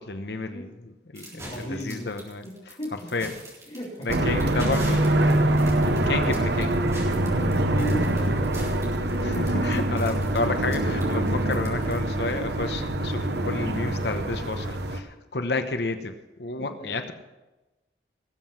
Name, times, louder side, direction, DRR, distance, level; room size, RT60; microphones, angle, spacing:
voice 1, 0.1-0.7 1.1-2.4 3.1-3.3 4.0-5.0 6.1-6.8 9.2-15.1 15.3-16.1 16.4-17.1, left 3 dB, 70° left, 7 dB, 1.0 m, -30 dB
sound 1, 1.2-12.4, right 1 dB, 15° right, 3.7 m, -43 dB
voice 2, 1.3-2.1 2.4-3.3 3.7-4.7 7.3-8.7 9.6-9.7 10.1-10.2 16.6-17.1, equal, 35° left, -6 dB, 3.6 m, -36 dB
Foley Street Helicopter Distant, 4.1-15.0, right 1 dB, 70° right, 1.0 m, -24 dB
18.5 x 7.7 x 5.9 m, 1.1 s
head